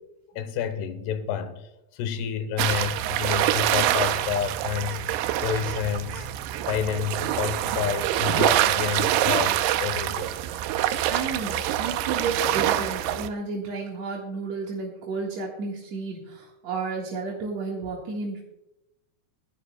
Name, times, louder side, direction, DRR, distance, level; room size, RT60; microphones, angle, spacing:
voice 1, 0.4-5.2 5.4-6.3 6.7-10.4, left 9 dB, 90° left, 3.0 m, -29 dB
sound 1, 2.6-13.3, right 12 dB, 85° right, 2.7 m, -25 dB
voice 2, 11.1-18.4, right 4 dB, 55° right, 2.3 m, -32 dB
24.0 x 11.0 x 2.2 m
omnidirectional pair, 4.6 m